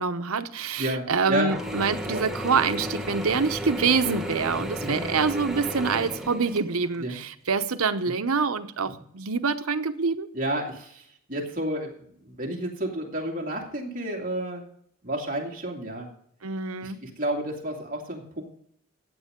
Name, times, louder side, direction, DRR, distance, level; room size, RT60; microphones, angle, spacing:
voice 1, 0.0-10.3 16.4-17.0, right 5 dB, 85° right, 11 dB, 0.9 m, -26 dB
voice 2, 0.8-1.5 2.1-2.2 4.8-5.0 7.0-7.2 8.1-8.2 10.3-11.9 12.2-14.6 15.0-16.1 16.8-18.4, right 1 dB, 40° right, 0 dB, 2.5 m, -31 dB
Mechanisms / Drill, 1.5-7.0, equal, ahead, 1.3 m, -33 dB
15.0 x 9.1 x 3.7 m, 0.67 s
head